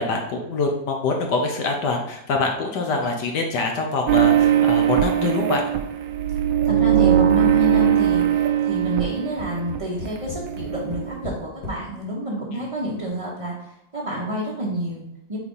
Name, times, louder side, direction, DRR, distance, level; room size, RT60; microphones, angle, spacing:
voice 1, 0.0-5.6, left 3 dB, 70° left, 2 dB, 1.3 m, -24 dB
sound 1, 4.1-9.8 10.0-11.2, right 10 dB, 80° right, 1.4 m, -20 dB
voice 2, 6.6-15.4, right 1 dB, 25° right, -6 dB, 0.7 m, -29 dB
Tap, 8.8-11.8 12.6-12.7 13.0-13.1, left 3 dB, 85° left, 2.3 m, -36 dB
4.9 x 4.0 x 5.4 m, 0.84 s
omnidirectional pair, 2.0 m